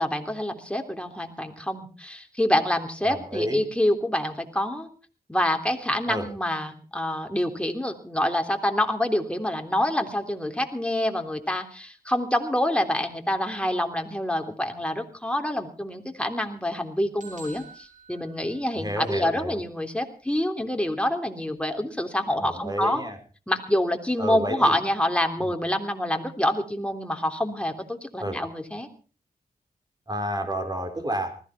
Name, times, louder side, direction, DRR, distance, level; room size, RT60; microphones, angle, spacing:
voice 1, 0.0-4.9 5.3-23.0 23.5-28.9, left 1 dB, 5° left, 4 dB, 3.4 m, -27 dB
voice 2, 3.0-3.6 6.1-6.3 18.8-19.6 22.4-23.2 24.2-24.7 25.4-25.5 28.2-28.4 30.1-31.4, right 1 dB, 25° right, 5 dB, 5.2 m, -30 dB
sound 1, 17.2-19.1, right 4 dB, 50° right, 6.1 m, -48 dB
20.0 x 15.0 x 4.3 m, 0.38 s
cardioid pair, 55°, 16 cm